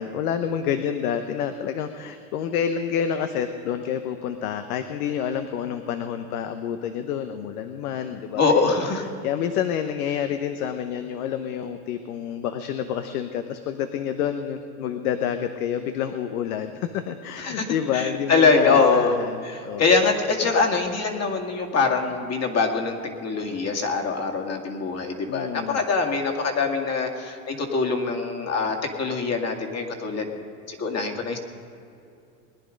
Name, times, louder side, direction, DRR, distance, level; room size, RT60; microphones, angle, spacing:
voice 1, 0.0-8.6 8.9-19.9 25.3-25.8, left 8 dB, 80° left, 9 dB, 0.9 m, -28 dB
voice 2, 8.4-9.0 17.4-19.2 19.4-30.3 30.7-31.4, left 4 dB, 35° left, 3 dB, 2.3 m, -23 dB
21.0 x 10.5 x 5.2 m, 2.6 s
supercardioid pair, 100°, 44 cm